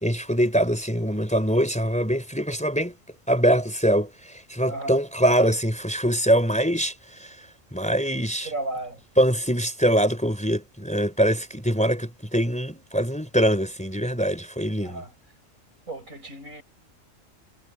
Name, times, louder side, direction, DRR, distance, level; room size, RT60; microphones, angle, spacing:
voice 1, 0.0-2.9 3.3-7.4 7.7-8.5 9.2-15.0, equal, 5° left, 3.9 m, -23 dB
voice 2, 4.7-5.0 8.4-9.0 14.8-15.1 15.9-16.6, right 2 dB, 90° right, 7.8 m, -34 dB
omnidirectional pair, 1.4 m